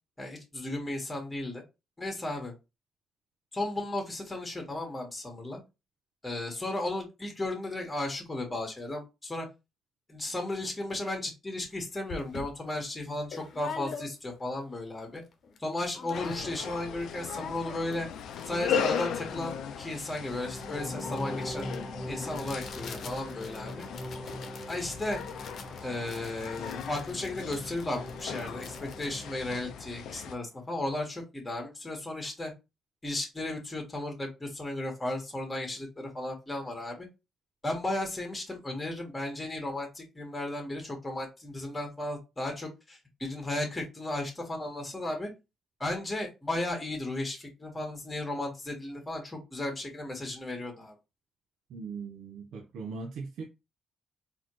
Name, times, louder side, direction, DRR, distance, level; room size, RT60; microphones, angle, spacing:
voice 1, 0.2-1.6 2.0-2.5 3.5-5.6 6.2-9.5 10.1-15.2 15.6-18.1 18.4-21.7 22.1-23.9 24.7-25.2 25.8-32.5 33.0-37.1 37.6-45.3 45.8-50.9, left 1 dB, 15° left, 1.5 m, -35 dB
sound 1, 11.6-11.7 12.1-14.5 14.9-15.0 15.2-15.6 15.9-16.8 17.0-30.1, left 5 dB, 60° left, 0.9 m, -46 dB
sound 2, 16.1-30.3, left 7 dB, 75° left, 0.4 m, -37 dB
sound 3, 20.2-30.3, equal, ahead, 1.2 m, -42 dB
voice 2, 51.7-53.4, right 4 dB, 75° right, 0.7 m, -39 dB
4.1 x 2.9 x 3.1 m
cardioid pair, 90°, 0 cm